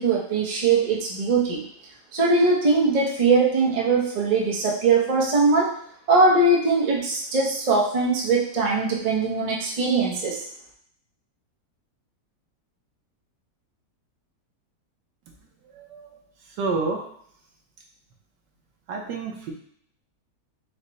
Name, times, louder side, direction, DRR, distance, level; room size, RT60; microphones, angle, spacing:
voice 1, 0.0-1.6 2.1-5.8 6.1-10.4, right 3 dB, 40° right, -3 dB, 0.6 m, -21 dB
voice 2, 15.7-16.1 16.6-17.0 18.9-19.5, right 4 dB, 85° right, 1 dB, 1.5 m, -28 dB
5.1 x 2.2 x 4.0 m, 0.67 s
omnidirectional pair, 1.8 m